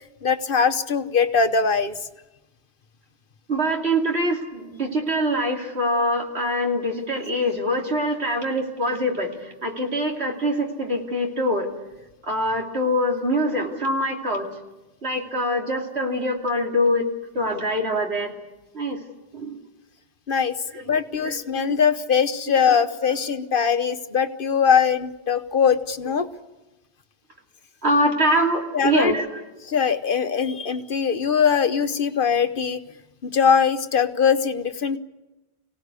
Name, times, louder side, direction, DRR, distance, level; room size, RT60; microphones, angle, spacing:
voice 1, 0.0-1.9 20.3-20.5 20.9-26.3 28.7-29.1 29.6-32.8 33.2-35.0, left 6 dB, 55° left, 9 dB, 1.1 m, -21 dB
voice 2, 3.5-9.3 9.6-11.7 12.3-14.5 15.0-17.1 17.3-18.3 18.7-19.0 19.3-19.6 21.2-21.6 27.8-29.3, equal, 80° right, 1 dB, 3.1 m, -24 dB
25.0 x 17.5 x 8.3 m, 1.0 s
omnidirectional pair, 1.1 m